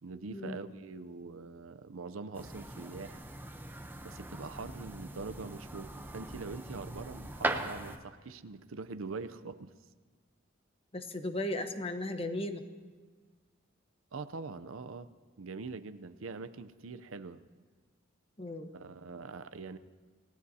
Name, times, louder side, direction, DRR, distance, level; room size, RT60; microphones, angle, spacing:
voice 1, 0.0-3.3 4.0-9.7 14.1-15.1 15.4-17.4 18.7-19.8, right 4 dB, 85° right, 11 dB, 0.6 m, -43 dB
sound 1, 2.3-8.0, right 1 dB, 10° right, 0.8 m, -40 dB
voice 2, 10.9-12.6 18.4-18.7, left 1 dB, 30° left, 7 dB, 1.0 m, -36 dB
29.0 x 17.5 x 2.8 m, 1.4 s
head